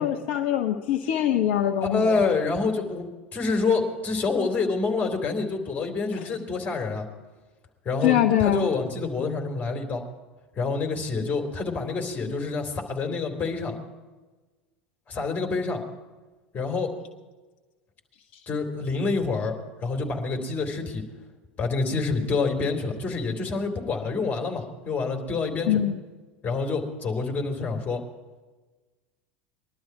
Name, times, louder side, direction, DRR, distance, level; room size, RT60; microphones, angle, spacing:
voice 1, 0.0-2.2 8.0-8.7 25.7-26.0, left 11 dB, 55° left, 4 dB, 0.9 m, -23 dB
voice 2, 1.9-7.1 7.8-10.0 10.5-13.7 15.1-15.8 16.5-16.9 18.5-19.5 19.8-21.0 21.6-25.8 26.4-28.0, left 4 dB, 30° left, 3 dB, 3.2 m, -27 dB
21.0 x 12.0 x 4.8 m, 1.3 s
figure-of-eight pair, 75°, 6 cm